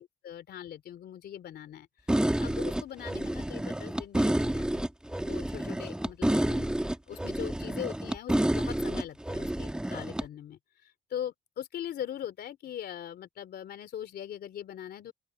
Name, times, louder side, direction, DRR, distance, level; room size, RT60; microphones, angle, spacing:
voice 1, 0.0-4.9 5.2-15.1, left 10 dB, 65° left, 3.3 m, -41 dB
sound 1, 2.1-10.2, right 1 dB, 5° right, 1.2 m, -29 dB
open air
cardioid pair, 160°, 18 cm